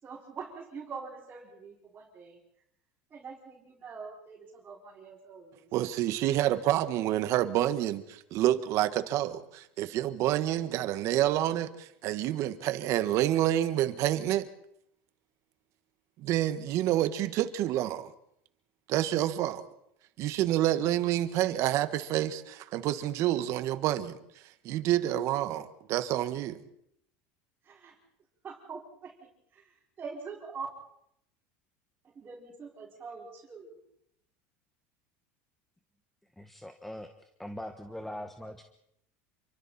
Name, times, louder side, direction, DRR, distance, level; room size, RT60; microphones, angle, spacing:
voice 1, 0.0-2.4 3.1-5.8 27.6-28.0 28.4-30.7 32.0-33.8, right 5 dB, 25° right, 5.5 m, -44 dB
voice 2, 5.7-14.5 16.2-18.1 18.9-19.7 20.2-24.2 24.6-26.6, right 13 dB, 55° right, 1.6 m, -28 dB
voice 3, 36.4-37.1 37.4-38.6, left 1 dB, 5° left, 1.4 m, -41 dB
28.5 x 24.5 x 4.4 m
supercardioid pair, 130°, 6 cm